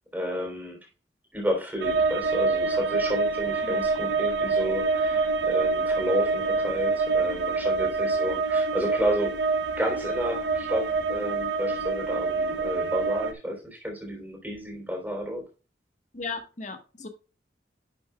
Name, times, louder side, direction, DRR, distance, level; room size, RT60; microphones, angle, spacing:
voice 1, 0.1-0.8 1.3-9.3 9.8-15.4, equal, 10° right, 3.6 m, -31 dB
sound 1, 1.8-13.3, right 4 dB, 75° right, 0.8 m, -26 dB
voice 2, 16.1-17.1, left 4 dB, 40° left, 1.3 m, -36 dB
11.0 x 6.3 x 2.3 m
head